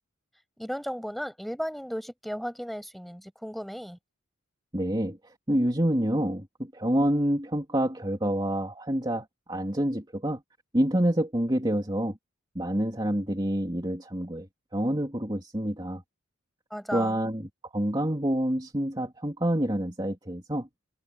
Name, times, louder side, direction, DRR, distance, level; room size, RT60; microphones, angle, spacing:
voice 1, 0.6-4.0 16.7-17.2, equal, ahead, 6.6 m, -35 dB
voice 2, 4.7-10.4 10.7-12.2 12.5-14.5 14.7-16.0 16.9-20.7, right 1 dB, 20° right, 3.3 m, -27 dB
head